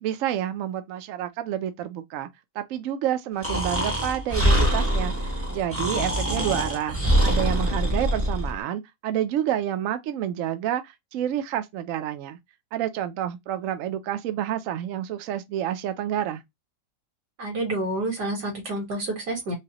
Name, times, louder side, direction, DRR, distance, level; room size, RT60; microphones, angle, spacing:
voice 1, 0.0-2.3 2.5-7.0 7.2-12.4 12.7-16.4, right 11 dB, 70° right, 0.8 m, -29 dB
Breathing, 3.4-8.5, equal, 20° right, 0.4 m, -24 dB
voice 2, 17.4-19.5, right 1 dB, 85° right, 2.1 m, -29 dB
4.7 x 2.2 x 2.9 m
omnidirectional pair, 1.7 m